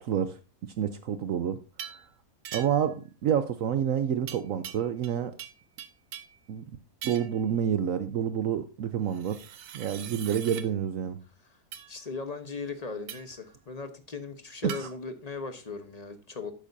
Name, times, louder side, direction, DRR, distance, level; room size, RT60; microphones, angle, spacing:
voice 1, 0.0-0.4 0.8-1.6 2.5-2.9 3.2-5.3 6.5-6.6 7.0-9.4 9.7-11.2 14.6-14.9, right 9 dB, 65° right, 10 dB, 1.0 m, -28 dB
sound 1, 1.8-2.1 2.4-2.9 4.3-5.1 5.4-6.4 7.0-7.4 9.1-10.7 11.7-11.9 13.1-13.4 14.7-14.8, right 9 dB, 85° right, 1.3 m, -42 dB
voice 2, 11.9-16.5, left 4 dB, 30° left, 8 dB, 1.0 m, -38 dB
11.5 x 8.6 x 2.6 m, 0.32 s
omnidirectional pair, 1.6 m